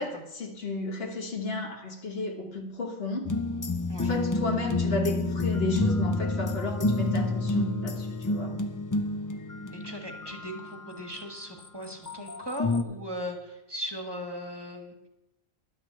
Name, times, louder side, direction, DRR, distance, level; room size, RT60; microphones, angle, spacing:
voice 1, 0.0-3.3 4.0-8.6, left 2 dB, 70° left, 2 dB, 1.6 m, -33 dB
Ethno Ambience, 3.3-11.0 11.7-12.8, left 2 dB, 30° left, 0.4 m, -29 dB
voice 2, 9.7-15.1, equal, 25° right, 3 dB, 1.4 m, -38 dB
11.0 x 6.4 x 7.4 m, 0.92 s
omnidirectional pair, 1.1 m